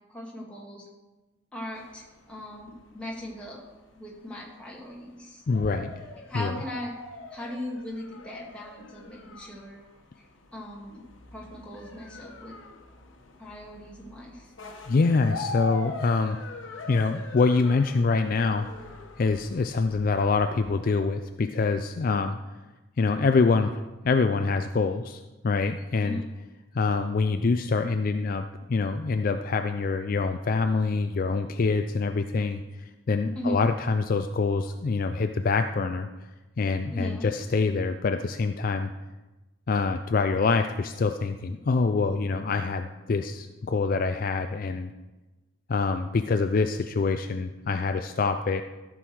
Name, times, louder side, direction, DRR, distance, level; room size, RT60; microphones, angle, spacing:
voice 1, 0.1-0.9 1.5-3.6 3.9-5.4 6.3-6.9 7.3-9.8 10.2-10.3 10.5-11.0 11.3-12.6 13.4-14.5 26.0-26.3 33.3-33.6 36.9-37.3, left 1 dB, 5° left, -4 dB, 2.1 m, -38 dB
sound 1, 1.7-20.8, left 2 dB, 65° left, 1.2 m, -42 dB
voice 2, 5.5-6.0 6.3-6.6 14.9-16.4 16.9-22.4 23.0-26.2 26.7-36.1 36.6-38.9 39.7-44.9 45.7-48.6, left 4 dB, 45° left, 7 dB, 0.4 m, -25 dB
13.5 x 6.2 x 4.7 m, 1.1 s
head